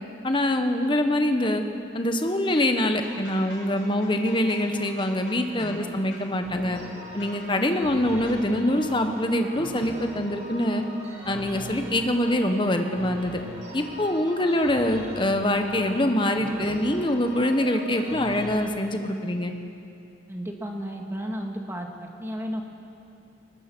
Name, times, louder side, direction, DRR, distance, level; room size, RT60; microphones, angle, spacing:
voice 1, 0.2-1.6 1.9-6.8 7.1-10.8 11.3-13.4 13.7-19.5, left 1 dB, 25° left, 6 dB, 1.2 m, -24 dB
sound 1, 2.9-5.8 6.1-6.4 7.2-7.5 8.3-8.6, left 2 dB, 85° left, 5.1 m, -46 dB
voice 2, 5.6-5.9 20.3-22.6, equal, 15° right, 2 dB, 1.9 m, -33 dB
sound 2, 6.4-18.6, equal, 40° right, 5.5 m, -40 dB
22.0 x 19.5 x 6.2 m, 2.7 s
head